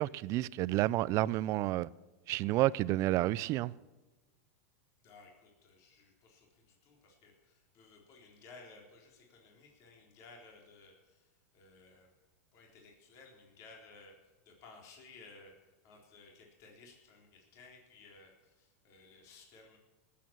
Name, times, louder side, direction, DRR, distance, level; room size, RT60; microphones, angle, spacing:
voice 1, 0.0-1.9 2.3-3.7, right 16 dB, 45° right, 0.5 m, -30 dB
voice 2, 5.0-12.1 12.5-19.8, left 3 dB, 45° left, 3.9 m, -57 dB
19.0 x 8.6 x 7.4 m
hypercardioid pair, 125°, 8 cm